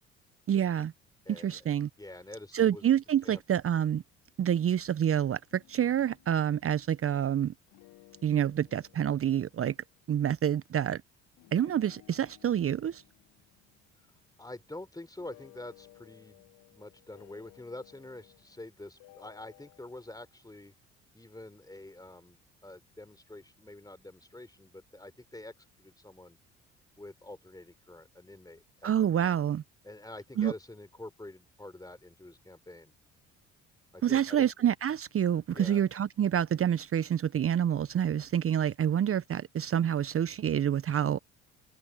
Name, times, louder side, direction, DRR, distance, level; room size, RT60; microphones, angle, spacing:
voice 1, 0.5-0.9 1.3-1.9 2.5-4.0 4.4-7.5 8.2-9.7 10.1-11.0 11.5-13.0 28.8-29.6 30.4-30.5 34.0-41.2, right 9 dB, 40° right, 1.1 m, -27 dB
voice 2, 1.3-1.7 2.0-2.9 3.2-3.4 14.4-20.7 21.1-26.4 27.0-28.9 29.2-29.4 29.8-32.9 33.9-34.5 35.5-35.8, left 2 dB, 10° left, 3.9 m, -47 dB
sound 1, 5.5-7.3 7.7-10.2 11.4-14.7 15.2-18.6 19.0-20.3, left 20 dB, 65° left, 5.1 m, -59 dB
hypercardioid pair, 50°, 34 cm